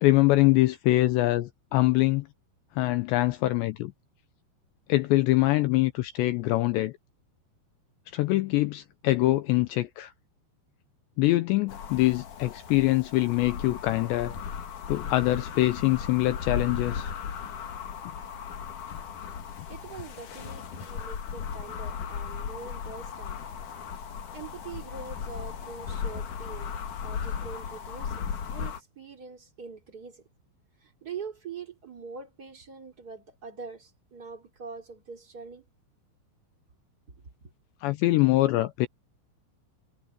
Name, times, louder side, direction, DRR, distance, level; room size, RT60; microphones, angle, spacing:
voice 1, 0.0-2.3 2.8-3.9 4.9-6.9 8.1-10.1 11.2-14.4 14.9-17.1 37.8-38.9, left 18 dB, 85° left, 2.6 m, -24 dB
sound 1, 11.7-28.8, left 7 dB, 55° left, 2.6 m, -36 dB
voice 2, 19.7-23.4 24.3-26.7 27.0-30.2 30.8-35.6, right 5 dB, 25° right, 2.1 m, -43 dB
omnidirectional pair, 5.8 m